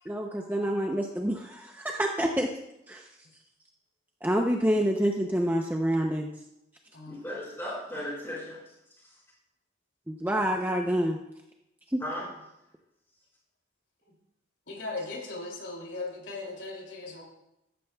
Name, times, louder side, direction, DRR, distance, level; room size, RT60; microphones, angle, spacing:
voice 1, 0.1-2.5 2.9-3.1 4.2-6.3 10.1-11.2 11.9-12.0, equal, 10° right, 1 dB, 0.6 m, -27 dB
voice 2, 7.1-8.7 9.0-9.1 12.0-12.3, left 1 dB, 15° left, -6 dB, 4.8 m, -36 dB
voice 3, 14.7-17.2, left 3 dB, 75° left, -1 dB, 2.9 m, -38 dB
14.0 x 12.5 x 2.3 m, 0.87 s
head